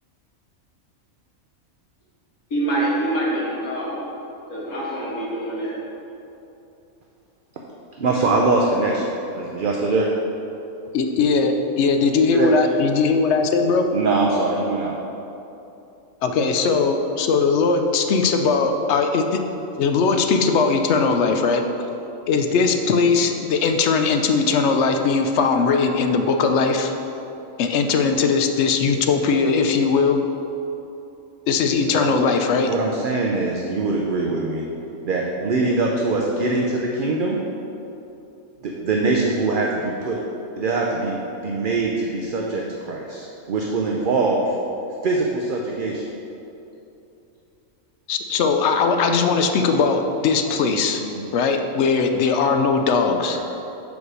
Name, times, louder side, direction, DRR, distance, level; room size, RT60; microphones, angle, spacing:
voice 1, 2.5-4.0 4.5-5.7, right 1 dB, 85° left, -6 dB, 2.2 m, -25 dB
voice 2, 8.0-10.1 12.3-12.5 13.9-15.0 31.9-32.2 32.5-34.7 35.0-37.4 38.6-40.2 40.6-44.5 45.0-46.0 51.1-51.2 53.3-53.4, right 3 dB, 55° right, -1 dB, 0.6 m, -23 dB
voice 3, 10.9-13.9 16.2-19.4 19.8-21.7 22.3-26.9 27.6-30.2 31.5-32.7 48.1-51.0 51.3-53.4, left 4 dB, 65° left, 5 dB, 0.8 m, -19 dB
5.2 x 4.8 x 6.2 m, 2.9 s
omnidirectional pair, 1.5 m